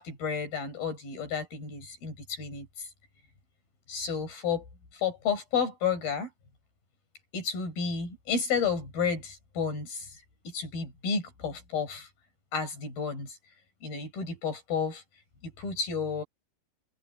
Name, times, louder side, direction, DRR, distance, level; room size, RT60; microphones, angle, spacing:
voice 1, 0.0-2.9 3.9-4.7 4.9-6.3 7.3-10.1 10.5-12.1 12.5-13.4 13.8-15.0 15.4-16.2, left 6 dB, 85° left, 8.9 m, -31 dB
omnidirectional pair, 4.2 m